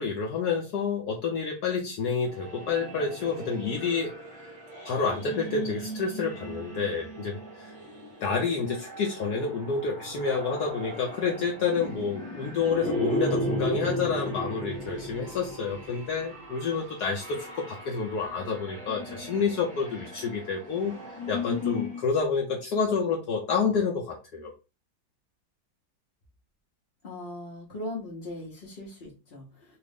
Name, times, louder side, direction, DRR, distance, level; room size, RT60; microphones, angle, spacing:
voice 1, 0.0-4.1 4.8-7.7 8.2-20.9 21.3-24.5, left 5 dB, 70° left, 1 dB, 1.1 m, -29 dB
sound 1, 2.2-22.1, equal, 30° right, 1.1 m, -36 dB
voice 2, 27.0-29.8, left 1 dB, 50° left, -4 dB, 0.7 m, -39 dB
3.2 x 2.4 x 3.3 m, 0.29 s
omnidirectional pair, 2.1 m